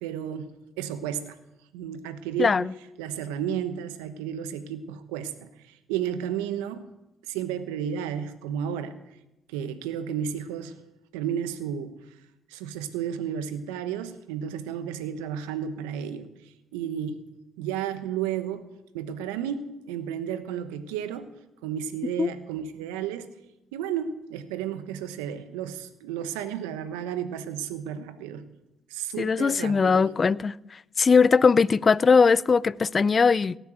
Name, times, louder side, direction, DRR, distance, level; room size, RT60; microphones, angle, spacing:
voice 1, 0.0-1.4 1.7-2.6 3.0-6.9 7.2-9.0 9.5-10.8 11.1-12.0 12.5-17.2 17.6-18.7 18.9-21.3 21.6-23.3 23.7-28.4 28.9-30.1, right 9 dB, 90° right, 1.0 m, -32 dB
voice 2, 2.4-2.7 22.2-22.3 29.2-30.5 31.0-33.6, left 5 dB, 40° left, 0.4 m, -20 dB
17.5 x 6.8 x 7.9 m
hypercardioid pair, 55°, 0 cm